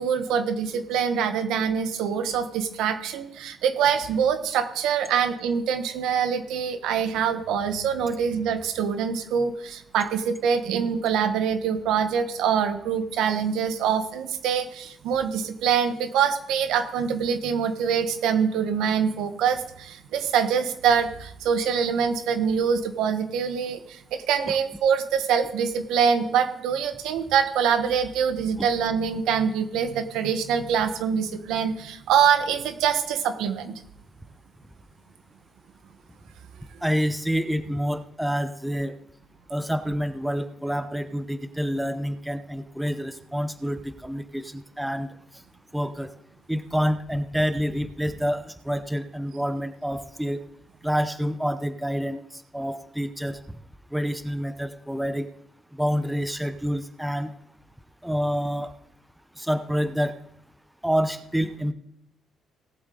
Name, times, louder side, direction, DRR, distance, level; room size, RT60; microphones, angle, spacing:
voice 1, 0.0-33.7, right 7 dB, 90° right, 9 dB, 1.2 m, -24 dB
voice 2, 36.8-38.9 39.5-45.1 45.7-46.1 46.5-50.4 50.8-53.4 53.9-55.3 55.7-57.3 58.0-58.7 59.4-60.2 60.8-61.7, equal, 5° right, 10 dB, 0.8 m, -27 dB
18.0 x 7.6 x 3.9 m, 0.73 s
cardioid pair, 90°, 0 cm